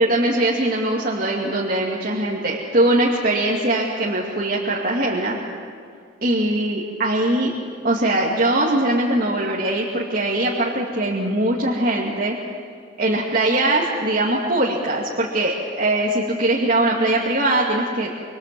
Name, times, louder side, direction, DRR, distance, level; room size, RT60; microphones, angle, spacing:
voice 1, 0.0-5.4 6.2-7.5 7.8-12.4 13.0-18.1, right 1 dB, 45° right, -4 dB, 2.4 m, -21 dB
26.0 x 25.5 x 7.7 m, 2.1 s
head